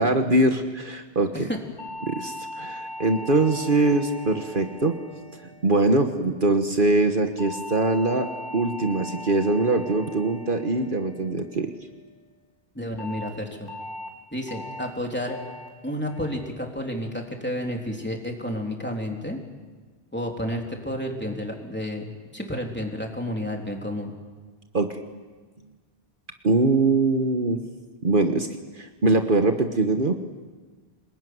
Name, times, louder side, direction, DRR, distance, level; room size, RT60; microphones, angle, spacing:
voice 1, 0.0-1.5 2.0-5.0 5.6-11.7 24.7-25.0 26.4-27.6 28.0-28.5 28.8-30.1, right 2 dB, 55° right, 6 dB, 1.6 m, -22 dB
sound 1, 1.8-6.2 7.4-11.8 13.0-13.3 13.7-14.1 14.5-14.9 15.3-15.7 16.1-16.5 16.9-17.3, left 1 dB, 60° left, 4.4 m, -39 dB
voice 2, 12.8-13.7 14.3-15.4 15.8-19.4 20.1-24.1, equal, 10° left, 1 dB, 3.6 m, -31 dB
26.5 x 20.5 x 9.5 m, 1.4 s
omnidirectional pair, 1.0 m